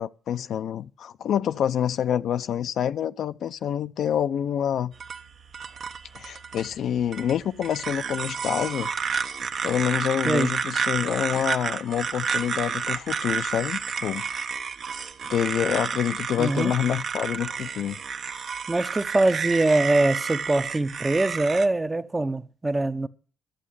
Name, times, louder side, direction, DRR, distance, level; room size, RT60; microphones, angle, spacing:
voice 1, 0.0-4.9 6.1-8.9 9.6-14.2 15.3-18.0, left 9 dB, 70° left, 0.6 m, -27 dB
sound 1, 4.9-21.7, right 6 dB, 55° right, 0.9 m, -31 dB
voice 2, 16.4-16.7 18.7-23.1, right 2 dB, 20° right, 0.7 m, -23 dB
11.5 x 7.5 x 10.0 m
cardioid pair, 90°, 0 cm